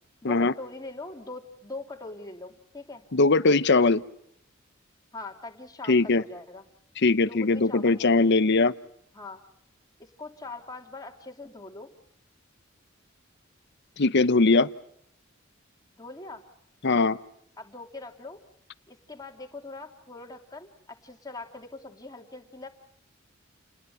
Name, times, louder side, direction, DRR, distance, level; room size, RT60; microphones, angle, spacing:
voice 1, 0.2-3.0 5.1-6.6 7.2-8.3 9.1-9.4 10.0-11.9 15.9-16.4 17.6-18.4 18.9-22.7, left 2 dB, 20° left, 3 dB, 3.0 m, -42 dB
voice 2, 3.1-4.0 5.9-6.2 7.0-8.7 14.0-14.7 16.8-17.2, left 3 dB, 60° left, 15 dB, 0.9 m, -21 dB
29.5 x 20.5 x 6.9 m, 0.72 s
head